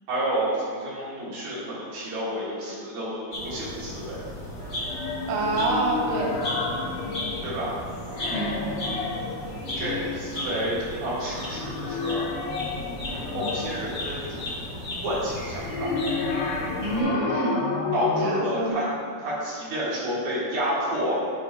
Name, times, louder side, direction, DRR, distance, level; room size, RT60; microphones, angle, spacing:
voice 1, 0.1-4.2 7.4-7.7 9.7-12.3 13.3-14.4 15.0-15.9 17.9-18.9 19.2-21.1, right 1 dB, 60° right, -8 dB, 2.8 m, -30 dB
sound 1, 3.3-17.0, left 1 dB, 55° left, 0.7 m, -35 dB
sound 2, 4.8-7.7 8.0-10.3 11.4-14.0 15.4-18.7, left 4 dB, 75° left, 1.9 m, -31 dB
voice 2, 5.3-6.3 8.3-8.6 16.8-17.7 18.2-18.7, right 2 dB, 90° right, -2 dB, 1.4 m, -26 dB
10.0 x 4.7 x 2.9 m, 2.1 s
omnidirectional pair, 4.1 m